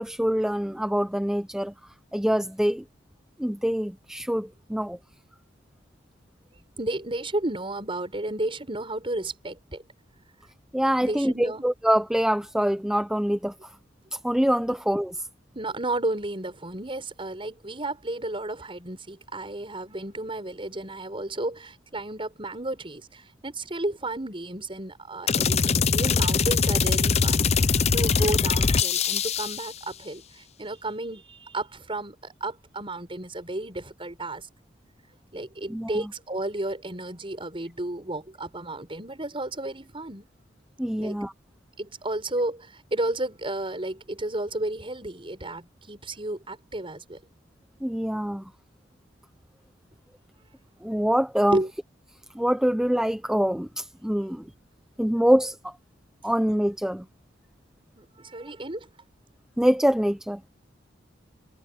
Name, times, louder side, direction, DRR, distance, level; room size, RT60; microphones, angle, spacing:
voice 1, 0.0-1.7 2.1-2.8 3.4-5.0 10.7-13.5 14.1-15.1 35.7-36.1 40.8-41.3 47.8-48.5 50.8-51.6 52.3-54.5 55.0-55.7 56.2-57.0 59.6-60.4, equal, 5° right, 0.7 m, -25 dB
voice 2, 6.8-9.8 11.0-11.6 15.5-34.5 35.3-40.3 41.0-41.2 41.8-47.2 51.5-51.7 58.0-58.9, right 2 dB, 30° right, 5.9 m, -32 dB
sound 1, 25.3-29.7, left 5 dB, 35° left, 0.6 m, -22 dB
head